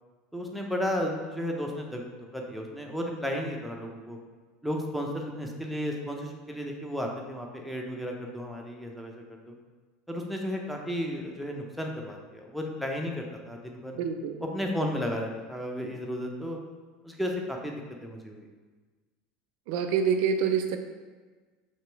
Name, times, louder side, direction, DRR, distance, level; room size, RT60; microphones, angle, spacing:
voice 1, 0.3-4.2 4.6-9.1 9.5-9.6 10.1-14.0 14.4-16.6 17.0-17.7 18.0-18.5, equal, ahead, 1 dB, 0.6 m, -33 dB
voice 2, 14.0-14.4 19.7-20.8, right 6 dB, 70° right, 7 dB, 0.4 m, -26 dB
3.0 x 2.9 x 4.4 m, 1.4 s
supercardioid pair, 110°, 0 cm